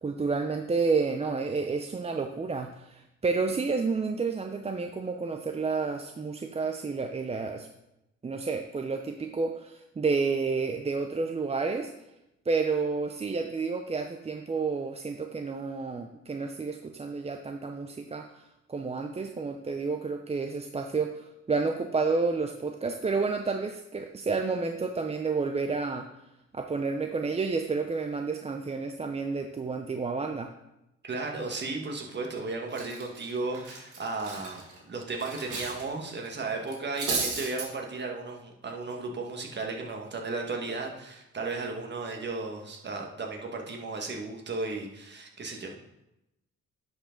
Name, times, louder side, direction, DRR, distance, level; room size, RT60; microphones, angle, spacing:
voice 1, 0.0-7.7 8.2-11.9 12.5-18.4 18.7-26.1 26.5-30.5, right 4 dB, 20° right, 4 dB, 0.5 m, -30 dB
voice 2, 31.0-45.9, right 3 dB, 35° right, 1 dB, 1.5 m, -35 dB
Cutlery silverware, 32.1-32.3 32.7-35.8 36.1-36.3 36.7-37.7, right 4 dB, 90° right, 2.1 m, -34 dB
10.5 x 4.9 x 3.8 m, 0.90 s
cardioid pair, 90°, 30 cm